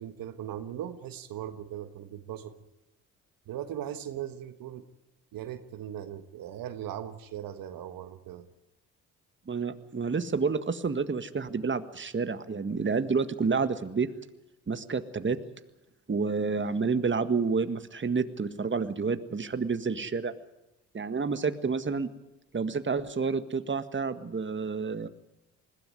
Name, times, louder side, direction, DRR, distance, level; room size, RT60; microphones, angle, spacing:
voice 1, 0.0-2.5 3.5-4.8 5.3-8.5, right 10 dB, 75° right, 10 dB, 1.5 m, -39 dB
voice 2, 9.5-14.1 14.7-15.4 16.1-20.3 20.9-22.1 22.5-25.1, right 5 dB, 35° right, 10 dB, 1.8 m, -29 dB
21.0 x 16.5 x 9.5 m, 0.93 s
supercardioid pair, 55°, 35 cm